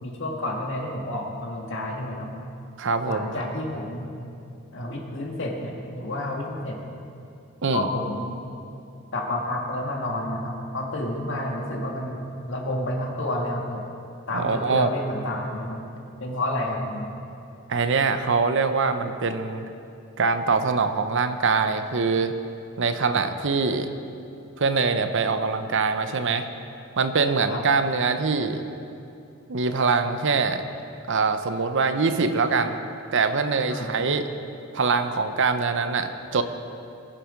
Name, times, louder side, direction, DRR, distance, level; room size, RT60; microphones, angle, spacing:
voice 1, 0.0-2.3 3.0-4.1 4.7-6.8 7.7-8.4 9.1-12.2 12.5-13.8 14.3-15.8 16.2-17.1 27.5-27.6 33.7-33.9, left 1 dB, 60° left, 0 dB, 2.0 m, -30 dB
voice 2, 2.8-3.4 7.6-7.8 14.3-14.9 17.7-19.7 20.2-22.3 22.8-23.9 24.6-26.5 27.0-28.6 29.5-30.6 31.1-32.8 33.1-34.2 34.7-36.4, right 4 dB, 60° right, 9 dB, 0.7 m, -23 dB
21.0 x 7.6 x 5.1 m, 2.6 s
head